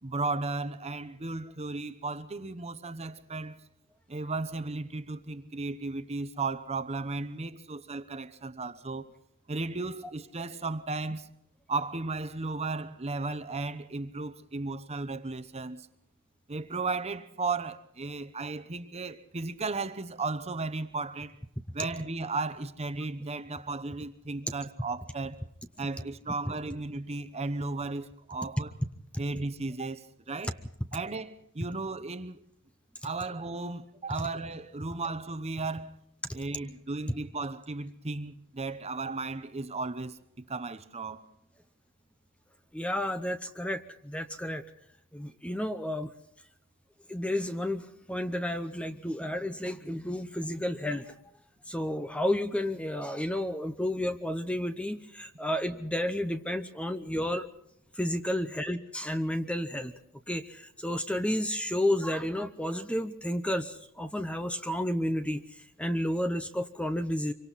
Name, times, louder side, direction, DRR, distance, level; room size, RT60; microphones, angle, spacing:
voice 1, 0.0-3.6 4.1-9.1 9.5-11.3 11.7-15.9 16.5-21.3 21.7-25.4 25.8-28.7 29.2-30.5 30.9-32.4 33.0-35.9 36.3-41.2, right 3 dB, 30° right, 1.0 m, -35 dB
voice 2, 42.7-44.6 45.1-46.1 47.1-51.1 51.7-57.5 58.0-59.9 60.3-65.4 65.8-67.3, left 1 dB, 5° left, 0.8 m, -31 dB
26.0 x 24.0 x 4.2 m
head